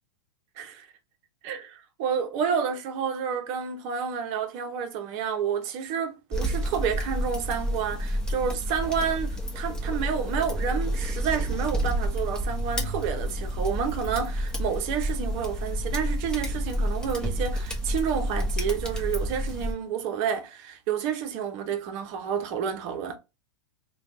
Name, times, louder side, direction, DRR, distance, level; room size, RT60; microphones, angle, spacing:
voice 1, 0.6-0.9 1.4-23.2, right 7 dB, 45° right, 0.9 m, -30 dB
sound 1, 6.3-19.7, equal, 5° left, 0.9 m, -29 dB
3.1 x 2.3 x 4.0 m
hypercardioid pair, 110°, 15 cm